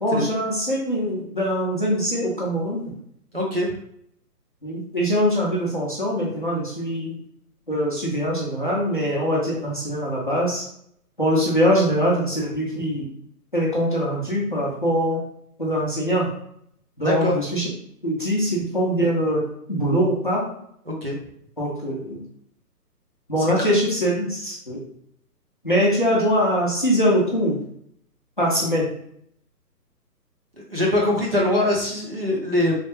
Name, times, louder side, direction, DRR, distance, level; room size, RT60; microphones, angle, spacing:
voice 1, 0.0-2.9 4.6-7.2 7.7-10.6 11.2-13.1 13.5-15.2 15.6-16.3 17.0-17.6 18.0-20.4 21.6-22.2 23.3-24.8 25.6-27.6 28.4-28.9, equal, 35° left, -4 dB, 0.5 m, -22 dB
voice 2, 3.3-3.7 17.0-17.4 20.9-21.2 30.7-32.7, left 1 dB, 40° right, -3 dB, 0.4 m, -22 dB
3.1 x 2.1 x 2.9 m, 0.70 s
hypercardioid pair, 170°, 47 cm